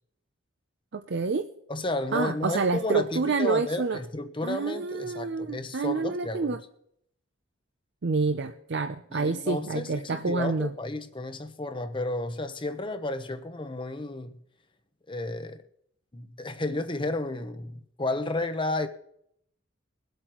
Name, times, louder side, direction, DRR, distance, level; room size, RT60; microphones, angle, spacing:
voice 1, 0.9-1.5 2.1-4.0 4.4-6.6 8.0-10.7, right 4 dB, 55° right, 0.5 m, -28 dB
voice 2, 1.7-6.6 9.1-14.4 15.1-15.6 16.1-18.9, left 2 dB, 25° left, 0.8 m, -32 dB
22.5 x 8.2 x 3.0 m
head